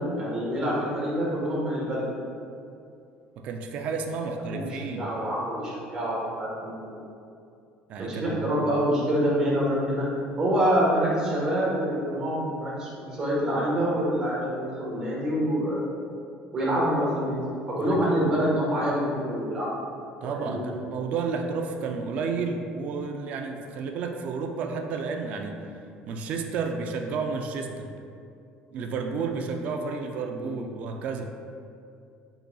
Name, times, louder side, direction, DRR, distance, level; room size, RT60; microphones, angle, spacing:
voice 1, 0.2-2.1 4.5-6.9 8.0-10.0 10.4-15.9 16.5-17.4 17.7-19.7 20.2-20.6 30.4-30.5, equal, 25° right, -6 dB, 1.3 m, -26 dB
voice 2, 3.4-5.1 7.9-8.4 17.8-18.0 20.2-25.6 26.0-27.9 28.7-31.3, right 4 dB, 50° right, 4 dB, 0.4 m, -31 dB
5.5 x 3.9 x 2.3 m, 2.5 s
cardioid pair, 155°, 3 cm